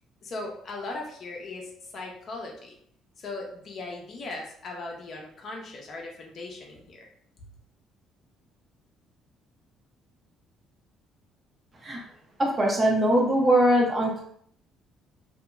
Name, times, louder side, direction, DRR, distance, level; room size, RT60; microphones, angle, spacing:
voice 1, 0.2-2.7 3.2-7.1, left 2 dB, 50° left, 0 dB, 0.8 m, -38 dB
voice 2, 12.4-14.2, right 1 dB, 30° right, -1 dB, 0.9 m, -21 dB
2.8 x 2.8 x 2.3 m, 0.65 s
cardioid pair, 90°, 0 cm